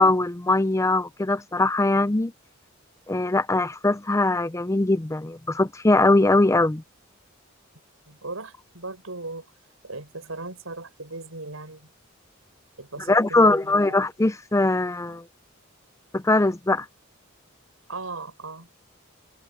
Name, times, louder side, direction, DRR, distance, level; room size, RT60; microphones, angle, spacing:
voice 1, 0.0-2.3 3.1-6.8 13.1-15.2 16.1-16.9, left 2 dB, 15° left, 0.5 m, -21 dB
voice 2, 8.1-9.5 9.8-11.9 12.8-13.8 15.1-15.2 17.9-18.7, right 3 dB, 85° right, 7.1 m, -37 dB
open air
head